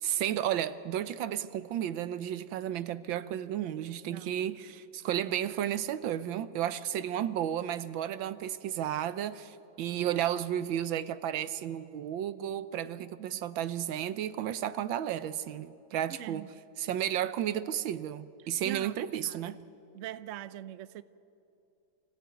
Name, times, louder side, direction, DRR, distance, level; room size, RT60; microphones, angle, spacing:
voice 1, 0.0-16.5 16.8-19.6, right 11 dB, 85° right, 1.6 m, -33 dB
voice 2, 4.0-4.4 13.0-13.3 16.2-16.5 18.6-18.9 19.2-19.4 19.9-21.0, right 12 dB, 65° right, 0.7 m, -42 dB
26.5 x 17.0 x 9.2 m
omnidirectional pair, 2.1 m